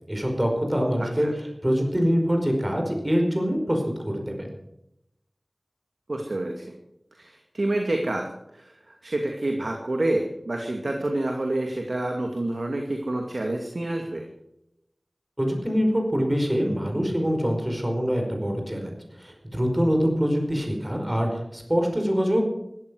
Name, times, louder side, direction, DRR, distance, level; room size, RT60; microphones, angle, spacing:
voice 1, 0.1-4.5 15.4-22.4, equal, 25° right, 3 dB, 5.1 m, -24 dB
voice 2, 1.0-1.3 6.1-6.7 7.2-8.3 8.5-14.2, right 1 dB, 75° right, 2 dB, 2.4 m, -28 dB
16.5 x 13.5 x 6.4 m, 0.83 s
wide cardioid pair, 40°, 0 cm